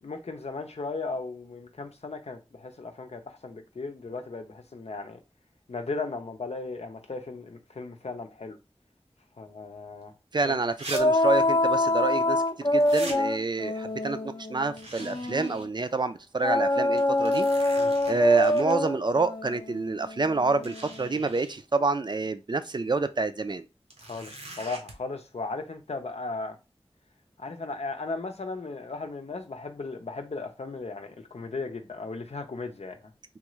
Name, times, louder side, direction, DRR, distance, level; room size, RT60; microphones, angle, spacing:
voice 1, 0.0-5.2 5.7-8.6 9.4-10.1 10.4-10.6 17.8-18.0 24.0-26.6 27.4-33.0, left 3 dB, 85° left, 0.6 m, -36 dB
sound 1, 10.0-10.1 10.8-11.0 11.3-11.4 12.8-13.2 14.8-15.7 16.1-16.2 17.0-18.7 19.9-20.0 20.6-21.6 23.9-24.9, right 2 dB, 90° right, 0.9 m, -42 dB
voice 2, 10.3-12.4 12.7-17.5 18.1-23.6, right 3 dB, 45° right, 0.4 m, -28 dB
sound 2, 10.9-15.6 16.4-21.1, left 1 dB, 45° left, 0.6 m, -25 dB
3.5 x 2.5 x 3.0 m
wide cardioid pair, 55°, 11 cm